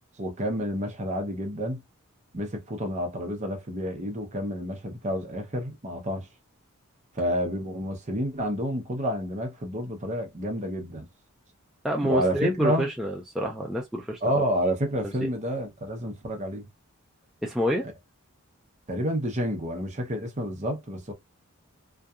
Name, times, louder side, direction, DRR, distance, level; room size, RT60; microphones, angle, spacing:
voice 1, 0.2-1.8 2.3-6.3 7.1-11.1 12.0-12.9 14.2-16.7 18.9-21.1, equal, 35° right, 0.7 m, -29 dB
voice 2, 11.8-14.4 15.2-15.3 17.4-17.9, equal, ahead, 0.3 m, -28 dB
2.7 x 2.2 x 2.3 m
head